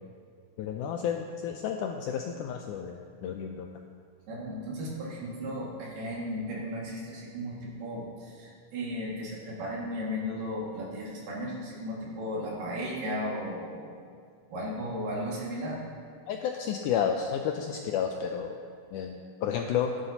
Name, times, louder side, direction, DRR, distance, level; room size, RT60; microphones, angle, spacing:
voice 1, 0.6-3.7 16.3-18.6 18.9-19.9, left 8 dB, 85° left, 3 dB, 1.8 m, -31 dB
voice 2, 4.3-13.9 14.5-15.8, equal, 70° right, -4 dB, 3.7 m, -35 dB
15.0 x 11.0 x 2.9 m, 2.1 s
omnidirectional pair, 4.1 m